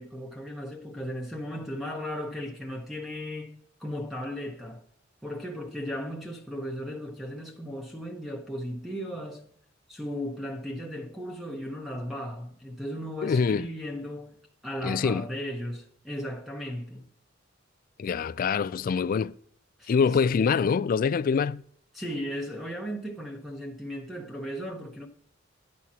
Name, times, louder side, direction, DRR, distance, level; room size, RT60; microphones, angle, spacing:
voice 1, 0.0-4.8 5.2-9.5 9.9-14.3 14.6-17.1 19.8-20.3 21.9-25.1, equal, ahead, 0.8 m, -36 dB
voice 2, 13.2-13.7 14.8-15.2 18.0-19.3 19.9-21.6, left 6 dB, 45° left, 0.3 m, -25 dB
10.5 x 4.3 x 6.0 m
head